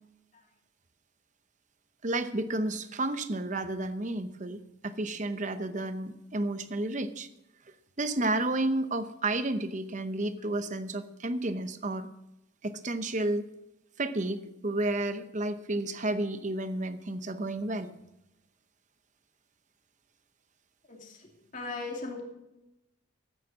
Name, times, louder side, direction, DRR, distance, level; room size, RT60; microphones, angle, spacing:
voice 1, 2.0-7.3 8.0-12.1 12.6-13.5 14.0-17.9, right 2 dB, 35° right, 10 dB, 0.8 m, -31 dB
voice 2, 21.5-22.2, left 3 dB, 35° left, 0 dB, 2.6 m, -37 dB
14.0 x 9.1 x 6.1 m, 0.91 s
head